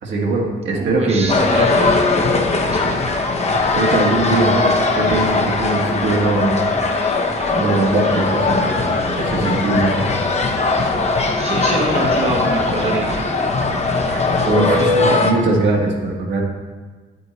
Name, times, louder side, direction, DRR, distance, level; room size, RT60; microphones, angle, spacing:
voice 1, 0.0-1.4 2.8-3.0 3.7-6.6 7.5-8.8 9.2-10.0 14.1-16.4, right 2 dB, 65° right, -2 dB, 1.8 m, -20 dB
voice 2, 0.7-2.2 2.7-2.8 11.3-13.2, right 2 dB, 30° right, 0 dB, 1.0 m, -24 dB
sound 1, 1.2-14.3, right 2 dB, 10° right, 0.6 m, -36 dB
sound 2, 1.3-15.3, left 3 dB, 35° left, 0.9 m, -19 dB
Snare drum, 5.5-10.0, left 4 dB, 75° left, 1.1 m, -39 dB
8.3 x 8.2 x 3.1 m, 1.4 s
cardioid pair, 90°, 20 cm